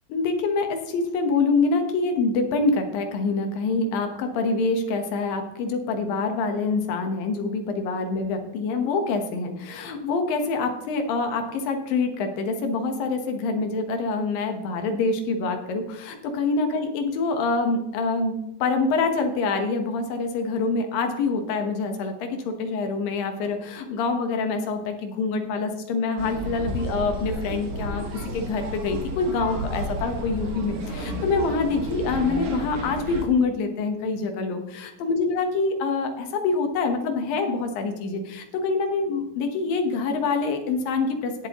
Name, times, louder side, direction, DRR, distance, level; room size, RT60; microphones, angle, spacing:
voice 1, 0.1-28.1 28.3-41.5, left 4 dB, 65° left, 6 dB, 2.5 m, -26 dB
sound 1, 26.2-33.2, equal, 55° right, 1.7 m, -32 dB
17.5 x 7.8 x 3.0 m, 0.90 s
omnidirectional pair, 5.1 m